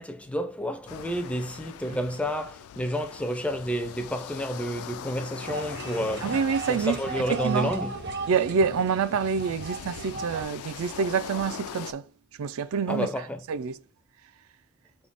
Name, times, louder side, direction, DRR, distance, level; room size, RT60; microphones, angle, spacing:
voice 1, 0.0-6.3 6.7-7.9 12.9-13.4, equal, 5° left, 0.3 m, -30 dB
sound 1, 0.9-11.9, left 8 dB, 80° left, 0.3 m, -42 dB
sound 2, 5.4-10.4, right 3 dB, 50° right, 0.7 m, -36 dB
voice 2, 6.2-7.0 7.3-7.7 8.3-12.1 12.4-13.1 13.5-13.8, right 6 dB, 70° right, 0.4 m, -27 dB
4.4 x 3.6 x 2.5 m
head